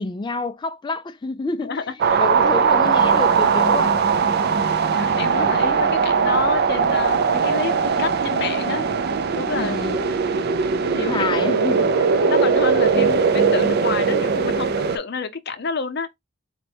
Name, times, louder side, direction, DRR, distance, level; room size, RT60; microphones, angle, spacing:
voice 1, 0.0-1.9 2.2-4.1 9.6-10.1 11.0-11.9, left 3 dB, 20° left, 0.3 m, -28 dB
sound 1, 2.0-15.0, right 5 dB, 50° right, 0.4 m, -20 dB
voice 2, 4.9-8.8 9.4-9.8 10.8-11.3 12.0-16.1, left 5 dB, 55° left, 0.7 m, -29 dB
4.3 x 2.2 x 4.2 m
head